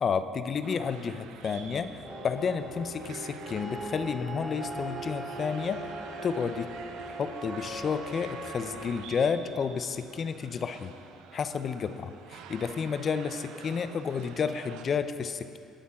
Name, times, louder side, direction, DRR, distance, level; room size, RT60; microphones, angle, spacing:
voice 1, 0.0-5.8 6.2-6.7 7.2-10.9 11.3-15.6, left 6 dB, 40° left, 11 dB, 0.7 m, -31 dB
sound 1, 0.6-14.8, right 8 dB, 80° right, 0.8 m, -49 dB
sound 2, 1.2-14.8, left 2 dB, 80° left, 3.7 m, -56 dB
sound 3, 2.0-8.9, right 1 dB, 10° right, 3.1 m, -40 dB
19.5 x 7.2 x 5.8 m, 2.5 s
cardioid pair, 110°, 0 cm